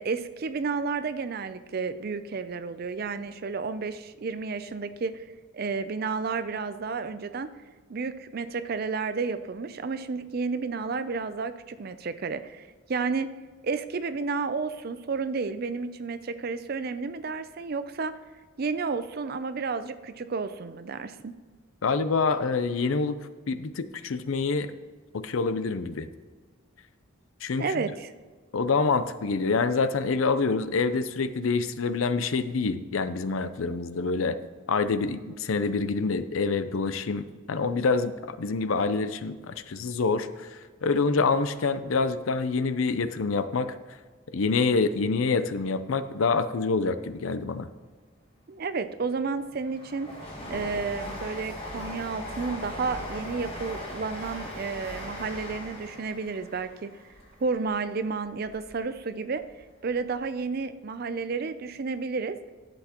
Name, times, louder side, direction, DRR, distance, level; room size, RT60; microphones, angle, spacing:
voice 1, 0.0-5.2 5.5-7.5 7.9-13.3 13.6-18.1 18.6-21.3 27.6-28.1 48.5-50.1 50.5-56.9 57.4-59.4 59.8-62.4, right 4 dB, 45° right, 11 dB, 0.4 m, -31 dB
voice 2, 21.8-23.2 23.5-24.7 25.1-26.1 27.4-27.8 28.5-34.4 34.7-43.7 44.3-47.7, left 4 dB, 75° left, 12 dB, 0.5 m, -26 dB
Train, 48.7-58.9 59.3-60.2 60.4-60.5, left 1 dB, 25° left, 1.8 m, -39 dB
11.5 x 7.8 x 2.9 m, 1.4 s
head